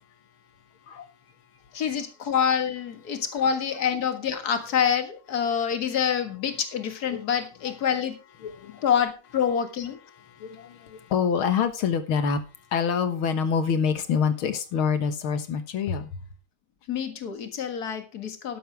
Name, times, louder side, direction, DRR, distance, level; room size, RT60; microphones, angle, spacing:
voice 1, 1.7-8.2 8.8-10.0 16.9-18.6, left 8 dB, 50° left, 2.1 m, -26 dB
voice 2, 8.4-8.8 10.4-12.4 12.7-16.1, left 6 dB, 80° left, 2.2 m, -26 dB
12.5 x 11.0 x 3.5 m
omnidirectional pair, 2.3 m